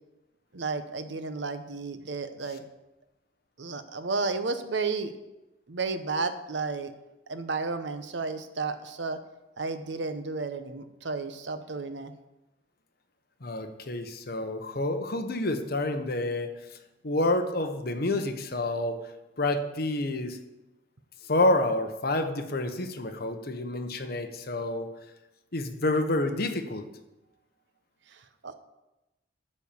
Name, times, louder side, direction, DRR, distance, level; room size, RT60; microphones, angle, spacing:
voice 1, 0.5-2.6 3.6-5.1 5.7-6.9 7.3-9.2 9.6-12.1 28.4-28.5, right 4 dB, 70° right, 10 dB, 0.8 m, -32 dB
voice 2, 13.4-16.8 17.0-19.0 19.4-20.4 21.3-24.9 25.5-26.9, left 2 dB, 55° left, 6 dB, 1.0 m, -28 dB
12.5 x 4.4 x 7.1 m, 0.98 s
head